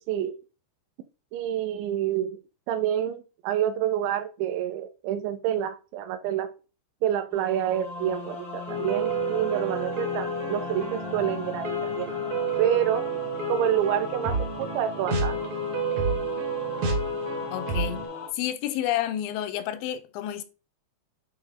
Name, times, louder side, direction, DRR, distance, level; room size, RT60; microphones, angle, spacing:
voice 1, 1.3-2.4 2.7-6.5 7.0-12.1 12.6-13.1 13.5-15.4, right 10 dB, 85° right, 3.1 m, -28 dB
sound 1, 7.3-18.3, left 4 dB, 70° left, 1.1 m, -38 dB
sound 2, 8.7-18.1, right 2 dB, 65° right, 1.8 m, -30 dB
voice 2, 17.5-18.0 18.3-20.4, left 12 dB, 85° left, 2.8 m, -30 dB
9.4 x 3.3 x 3.6 m
omnidirectional pair, 5.2 m